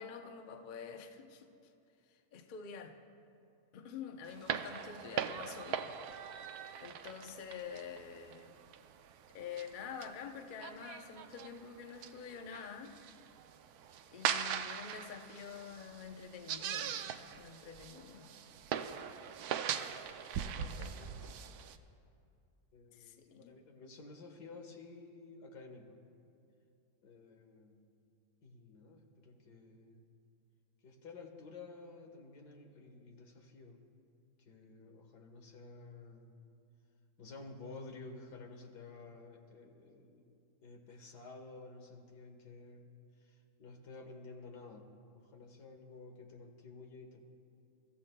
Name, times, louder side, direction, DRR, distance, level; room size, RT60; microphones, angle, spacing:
voice 1, 0.0-1.5 2.1-2.9 3.7-5.9 6.8-8.5 9.3-12.9 14.1-17.0 17.4-18.3 20.4-21.1 22.9-23.6, left 6 dB, 45° left, 5 dB, 0.7 m, -47 dB
sound 1, 4.3-21.8, right 8 dB, 75° right, 1.1 m, -41 dB
voice 2, 20.9-21.4 22.7-26.0 27.0-27.9 28.4-30.0 30.8-33.8 34.5-36.3 37.2-40.3 40.6-42.9 43.2-47.3, left 3 dB, 90° left, 2 dB, 2.0 m, -52 dB
28.5 x 14.5 x 2.2 m, 2.5 s
omnidirectional pair, 1.7 m